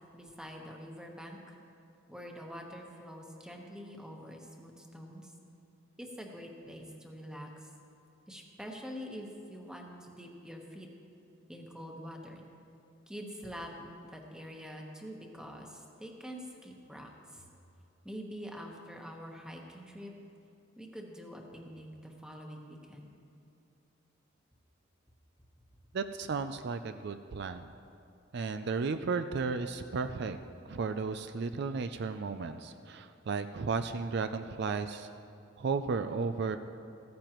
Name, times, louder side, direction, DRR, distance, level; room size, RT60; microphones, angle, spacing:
voice 1, 0.1-1.4 2.1-5.3 6.0-7.7 8.3-10.9 11.5-12.4 13.1-17.5 18.0-20.1 20.8-23.1, equal, 5° right, 1 dB, 1.1 m, -45 dB
voice 2, 25.9-27.7 28.3-30.4 30.7-35.1 35.6-36.6, right 4 dB, 60° right, 9 dB, 0.4 m, -34 dB
14.5 x 14.5 x 3.0 m, 2.6 s
head